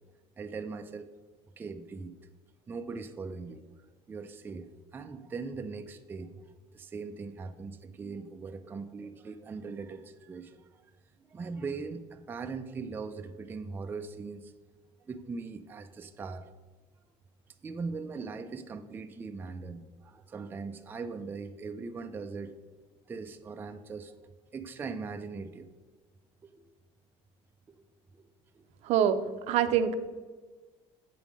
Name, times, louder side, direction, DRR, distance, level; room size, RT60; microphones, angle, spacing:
voice 1, 0.4-1.1 1.6-2.1 2.7-3.6 4.1-6.3 6.7-10.6 11.3-14.5 15.1-16.4 17.6-22.5 23.1-24.1 24.5-25.7 26.4-26.6 27.7-27.8 28.1-28.3 28.5-28.6, right 4 dB, 15° right, 7 dB, 0.3 m, -40 dB
voice 2, 28.8-29.2 29.5-30.0, right 9 dB, 65° right, 11 dB, 0.5 m, -24 dB
7.5 x 3.6 x 6.0 m, 1.3 s
cardioid pair, 145°, 12 cm